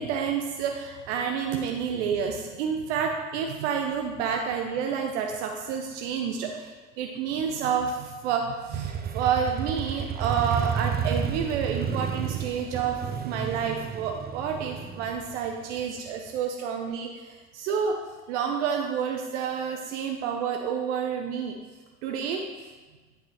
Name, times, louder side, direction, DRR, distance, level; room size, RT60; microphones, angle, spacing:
voice 1, 0.0-18.0 18.3-21.6 22.0-22.4, right 7 dB, 75° right, 3 dB, 0.6 m, -29 dB
Motorcycle, 8.7-16.4, right 7 dB, 25° right, 0.6 m, -32 dB
8.6 x 5.4 x 2.9 m, 1.3 s
hypercardioid pair, 60°, 36 cm